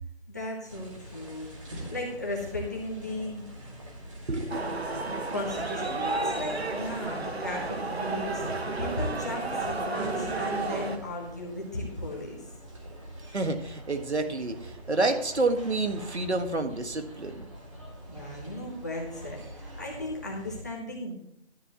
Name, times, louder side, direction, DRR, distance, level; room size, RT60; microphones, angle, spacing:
voice 1, 0.3-1.6 1.9-3.5 5.3-12.5 18.1-21.2, left 1 dB, 15° left, -2 dB, 1.2 m, -36 dB
sound 1, 0.7-20.6, equal, 30° right, 2.4 m, -45 dB
voice 2, 4.3-5.3 13.3-17.5, right 2 dB, 85° right, 6 dB, 1.8 m, -29 dB
sound 2, 4.5-11.0, right 3 dB, 70° right, 1.7 m, -32 dB
12.5 x 9.9 x 3.1 m, 0.74 s
figure-of-eight pair, 175°, 33 cm